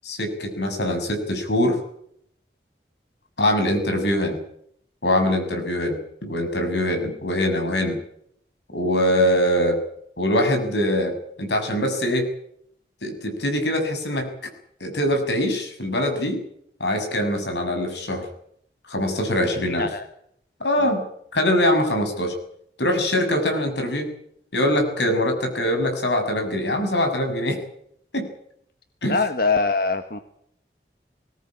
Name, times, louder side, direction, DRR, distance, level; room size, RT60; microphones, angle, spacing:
voice 1, 0.0-1.8 3.4-4.4 5.0-8.0 8.7-9.8 10.2-12.3 13.0-14.3 14.8-16.4 16.8-18.3 18.9-19.9 20.6-21.0 21.3-22.3 22.8-24.1 24.5-27.6 28.1-28.3 29.0-29.2, left 1 dB, 80° left, 5 dB, 6.7 m, -23 dB
voice 2, 19.4-20.0 20.8-21.0 29.1-30.2, left 4 dB, 55° left, 8 dB, 1.4 m, -24 dB
21.5 x 18.0 x 8.8 m, 0.71 s
head